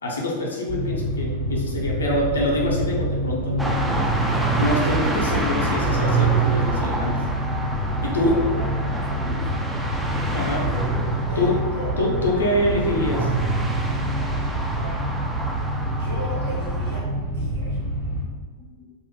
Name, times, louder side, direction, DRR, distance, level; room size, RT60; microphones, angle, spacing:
voice 1, 0.0-3.9 4.5-7.2 8.0-8.4 9.2-9.4 10.3-10.7 11.4-11.6 12.0-13.3, left 1 dB, 70° left, -3 dB, 0.6 m, -25 dB
sound 1, 0.7-18.2, equal, 55° right, 0.8 m, -27 dB
sound 2, 3.6-17.0, right 3 dB, 5° right, 0.3 m, -27 dB
voice 2, 8.0-9.7 11.3-11.9 14.8-15.0 15.9-17.8 18.5-18.8, equal, 75° right, -8 dB, 1.2 m, -37 dB
2.5 x 2.0 x 2.9 m, 1.4 s
figure-of-eight pair, 90°, 0 cm